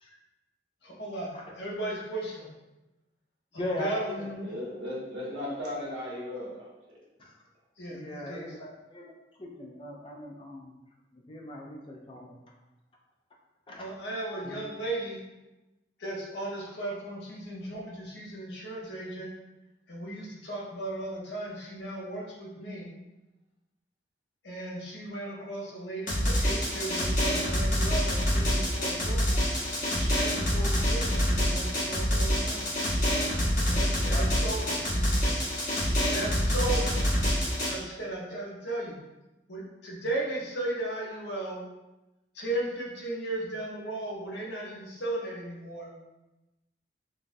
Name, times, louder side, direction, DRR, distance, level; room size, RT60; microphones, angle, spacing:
voice 1, 0.8-2.5 3.5-4.6 7.8-8.4 13.7-15.2 16.0-19.3 19.9-22.9 24.4-29.4 29.9-32.7 33.6-35.3 36.1-37.0 37.7-39.0 39.5-41.6 42.3-45.9, right 2 dB, 70° left, -3 dB, 0.8 m, -36 dB
voice 2, 3.5-4.3 7.2-7.3 7.9-9.1 9.4-10.8 11.1-12.4 13.7-13.9 14.2-14.6 33.9-34.3, left 1 dB, 30° left, 0 dB, 0.4 m, -39 dB
voice 3, 4.4-7.0, left 1 dB, 85° right, -6 dB, 1.2 m, -36 dB
Drum, 26.1-37.7, equal, 45° left, 0.9 m, -26 dB
3.8 x 2.3 x 2.6 m, 1.0 s
head